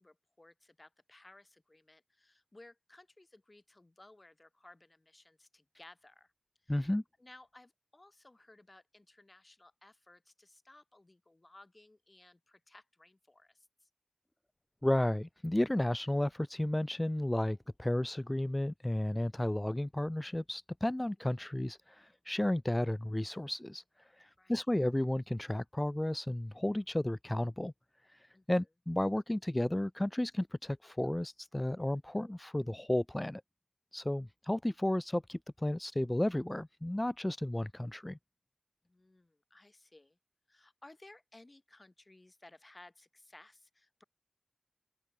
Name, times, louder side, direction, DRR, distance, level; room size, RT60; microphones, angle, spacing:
voice 1, 0.0-6.3 6.6-6.9 7.2-13.9 24.4-24.6 28.3-28.5 38.8-40.2 40.5-44.0, left 2 dB, 60° left, 5.0 m, -59 dB
voice 2, 6.7-7.0 14.8-27.7 28.0-33.4 33.9-38.2, left 1 dB, 30° left, 0.5 m, -33 dB
open air
wide cardioid pair, 45°, 0 cm